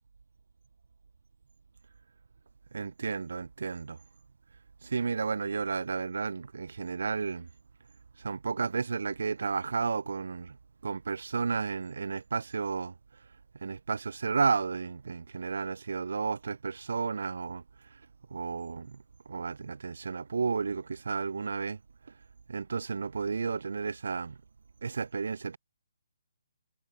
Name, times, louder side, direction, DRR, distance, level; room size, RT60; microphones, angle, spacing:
voice 1, 2.7-4.0 4.8-7.5 8.2-10.6 10.8-12.9 13.6-17.6 17.9-18.0 18.3-21.8 22.5-24.4 24.8-25.6, right 5 dB, 80° right, 1.4 m, -32 dB
hypercardioid pair, 170°, 0 cm